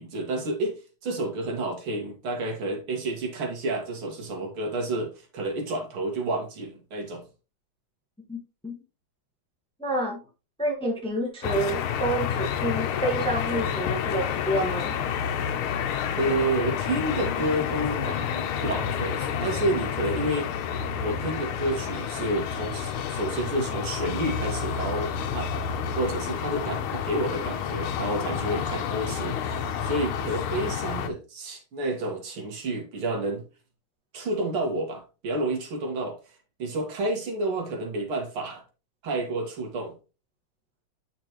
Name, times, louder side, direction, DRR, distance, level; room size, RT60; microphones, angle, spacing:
voice 1, 0.0-7.3 16.2-20.5 21.0-25.5 25.9-33.4 34.1-36.2 36.6-38.6 39.0-39.9, right 2 dB, 80° right, 2.5 m, -30 dB
voice 2, 8.3-8.8 9.8-10.2 10.6-14.9, right 1 dB, 5° left, 1.0 m, -28 dB
sound 1, 11.4-31.1, left 8 dB, 85° left, 1.6 m, -29 dB
8.4 x 5.2 x 3.0 m
omnidirectional pair, 2.3 m